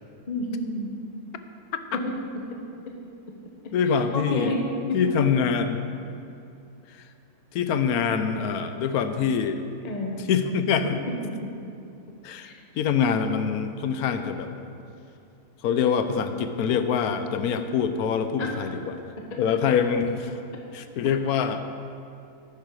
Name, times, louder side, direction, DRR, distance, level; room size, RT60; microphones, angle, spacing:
voice 1, 0.3-0.9 1.9-2.0 4.1-4.6 9.8-10.2 12.4-12.6 18.4-18.5, left 2 dB, 30° left, 0 dB, 1.0 m, -29 dB
voice 2, 3.7-4.5 4.9-5.8 6.9-7.1 7.5-9.6 10.2-11.0 12.2-14.5 15.6-19.0 19.4-20.4 20.7-21.6, left 7 dB, 75° left, 9 dB, 1.1 m, -25 dB
11.5 x 9.6 x 4.7 m, 2.7 s
omnidirectional pair, 1.6 m